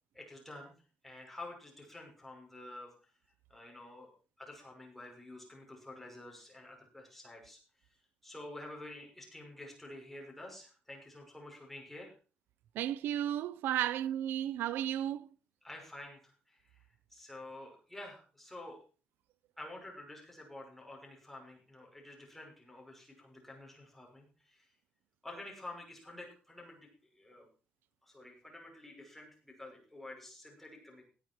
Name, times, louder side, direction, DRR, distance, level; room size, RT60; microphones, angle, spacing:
voice 1, 0.1-0.7 1.0-2.9 3.5-4.1 4.4-7.6 8.2-12.1 13.8-13.9 15.6-18.8 19.6-24.7 25.2-26.8 27.1-27.5 28.0-31.1, left 2 dB, 5° left, 5.9 m, -49 dB
voice 2, 12.8-15.3, right 11 dB, 85° right, 0.6 m, -33 dB
17.5 x 8.8 x 4.6 m
cardioid pair, 125°, 3 cm